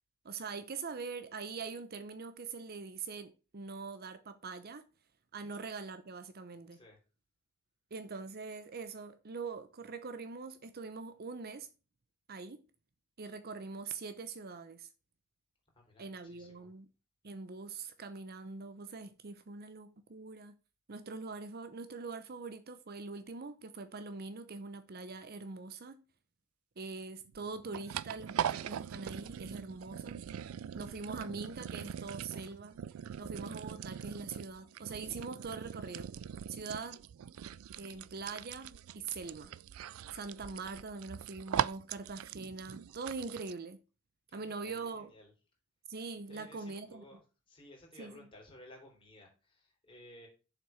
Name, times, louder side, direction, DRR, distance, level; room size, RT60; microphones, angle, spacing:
voice 1, 0.2-4.8 5.3-6.8 7.9-11.7 12.3-12.6 13.2-14.9 16.0-16.9 17.2-20.6 20.9-26.0 26.8-30.2 30.7-32.8 33.2-36.1 36.5-37.0 37.8-39.5 40.1-43.8 44.3-45.1 45.9-47.2 48.0-48.3, right 4 dB, 50° right, 0.7 m, -43 dB
voice 2, 15.7-16.7 40.5-40.6 44.3-45.3 46.3-47.2 47.5-50.3, left 1 dB, 25° left, 3.7 m, -56 dB
sound 1, 27.3-43.5, right 9 dB, 80° right, 0.4 m, -41 dB
7.2 x 5.9 x 5.7 m
head